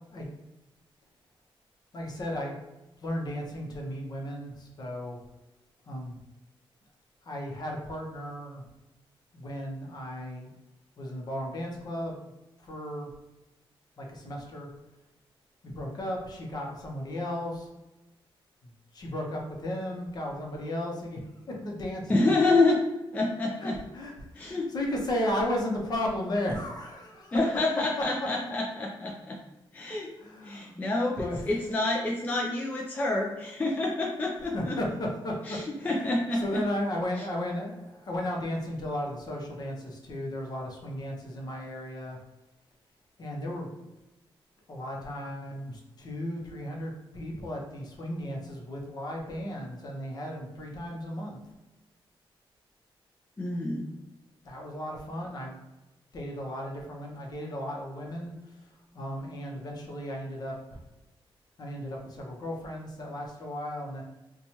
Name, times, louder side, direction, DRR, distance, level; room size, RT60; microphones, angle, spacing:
voice 1, 1.9-2.6 3.0-5.2 5.9-6.2 7.2-8.6 9.3-10.5 11.0-12.1 12.6-13.1 14.0-14.7 15.6-17.7 18.6-21.2 21.5-22.4 23.6-27.4 28.0-28.3 30.2-30.8 31.2-31.5 34.5-42.2 43.2-43.7 44.7-51.4 54.4-55.6 56.1-60.8 61.6-64.0, left 1 dB, 45° left, 0 dB, 0.7 m, -35 dB
voice 2, 22.1-22.8 23.1-23.7 24.4-24.7 27.3-29.4 29.7-30.1 30.4-34.7 35.5-36.4 53.4-53.9, left 2 dB, 15° left, -1 dB, 0.3 m, -27 dB
4.1 x 2.2 x 2.9 m, 1.0 s
wide cardioid pair, 180°, 9 cm